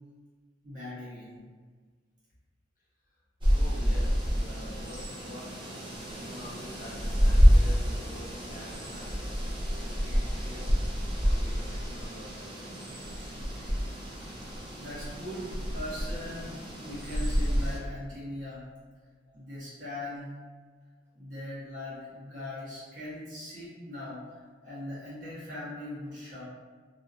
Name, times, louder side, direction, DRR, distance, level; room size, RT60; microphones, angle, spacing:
voice 1, 0.6-1.4 13.5-13.6 14.8-18.7 19.3-20.4 21.1-26.4, left 1 dB, 45° right, -9 dB, 1.1 m, -40 dB
sound 1, 3.4-17.8, equal, 25° right, 0.5 m, -28 dB
voice 2, 3.5-5.6 6.1-10.7 11.2-12.8 19.3-19.4 20.9-21.0, equal, 50° left, -7 dB, 0.8 m, -47 dB
2.7 x 2.3 x 2.5 m, 1.5 s
head